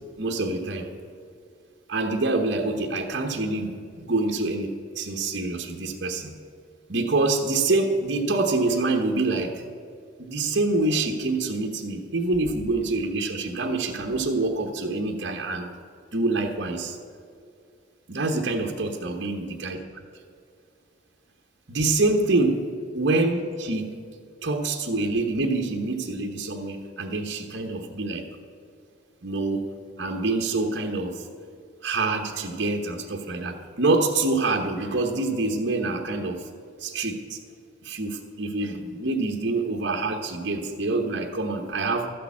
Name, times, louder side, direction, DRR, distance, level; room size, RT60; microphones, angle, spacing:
voice 1, 0.2-0.9 1.9-6.3 6.9-9.5 10.2-15.7 16.1-17.0 18.1-19.8 21.7-22.7 22.9-23.9 24.4-28.2 29.2-29.6 30.0-31.2 31.8-36.5 36.8-37.4 37.8-42.1, right 2 dB, 60° right, 2 dB, 1.0 m, -26 dB
13.0 x 6.7 x 8.5 m, 2.3 s
head